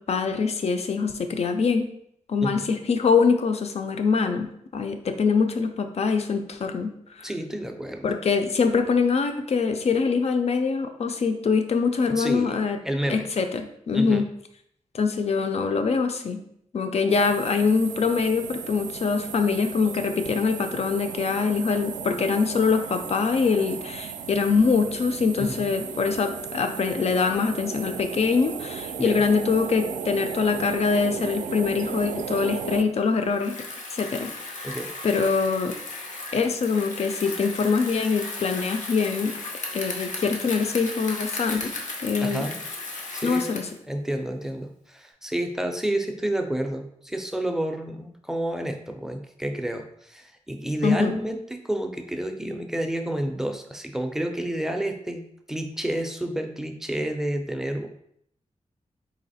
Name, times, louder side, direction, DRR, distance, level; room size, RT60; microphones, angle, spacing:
voice 1, 0.0-1.9 2.3-6.9 7.2-7.3 8.0-12.8 13.1-14.2 14.9-16.4 16.7-33.6 33.9-34.7 35.0-35.7 36.3-39.4 39.7-41.7 42.0-42.5 43.2-43.7 50.8-51.1, left 5 dB, 55° left, 7 dB, 0.5 m, -24 dB
voice 2, 7.2-8.1 12.1-13.3 13.9-14.2 25.4-25.7 29.0-29.2 34.6-34.9 42.2-42.6 43.1-43.5 43.9-57.9, right 1 dB, 5° right, 4 dB, 0.4 m, -30 dB
sound 1, 17.1-32.8, right 7 dB, 90° right, 0.4 m, -35 dB
Bicycle, 33.3-43.8, left 3 dB, 80° left, 0.7 m, -35 dB
4.1 x 2.8 x 4.0 m, 0.72 s
wide cardioid pair, 145°, 13 cm